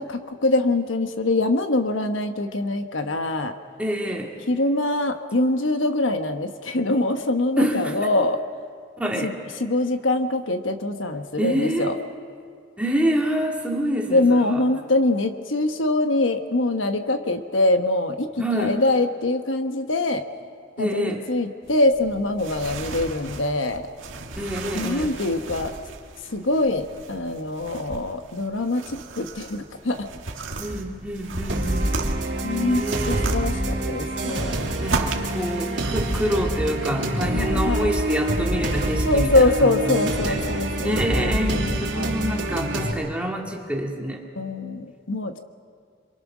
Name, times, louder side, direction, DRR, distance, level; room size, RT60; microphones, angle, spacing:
voice 1, 0.0-3.5 4.5-8.4 9.2-9.3 9.6-11.9 14.1-18.3 18.5-20.2 20.8-23.8 24.7-25.7 26.3-28.8 29.2-30.0 32.4-34.6 37.3-37.9 39.0-42.1 44.4-45.4, left 2 dB, 80° left, 7 dB, 1.2 m, -23 dB
voice 2, 3.8-4.3 7.6-8.2 9.0-9.4 11.4-11.9 12.8-14.6 18.4-18.8 20.8-21.3 24.4-25.2 30.6-32.0 32.5-33.4 34.8-44.2, equal, 5° right, -1 dB, 2.1 m, -27 dB
sound 1, 21.6-36.3, right 3 dB, 80° right, 1.8 m, -35 dB
sound 2, 31.5-42.9, right 1 dB, 65° right, 3.4 m, -26 dB
27.5 x 23.5 x 6.2 m, 2.2 s
head